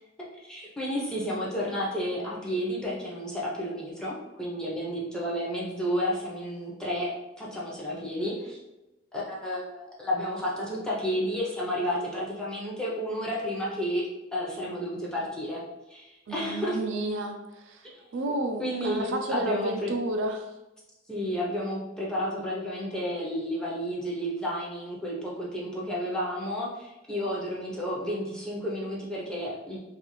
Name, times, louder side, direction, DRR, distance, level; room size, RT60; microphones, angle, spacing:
voice 1, 0.2-7.1 7.4-8.6 9.1-14.1 14.3-15.6 15.9-16.8 17.9-18.3 18.6-19.9 21.1-29.8, equal, 5° left, -6 dB, 0.6 m, -31 dB
voice 2, 16.3-17.9 18.1-20.5, right 2 dB, 65° right, 3 dB, 0.3 m, -31 dB
2.4 x 2.4 x 3.0 m, 0.98 s
head